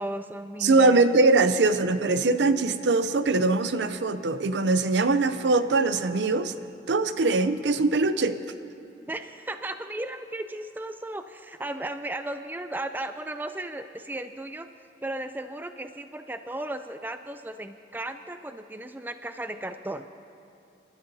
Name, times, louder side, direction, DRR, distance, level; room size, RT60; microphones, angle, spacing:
voice 1, 0.0-1.0 9.1-14.7 15.0-20.1, right 1 dB, 10° right, 9 dB, 0.3 m, -35 dB
voice 2, 0.6-6.5 6.9-8.4, right 3 dB, 80° right, 11 dB, 0.5 m, -22 dB
28.5 x 12.5 x 2.8 m, 2.8 s
head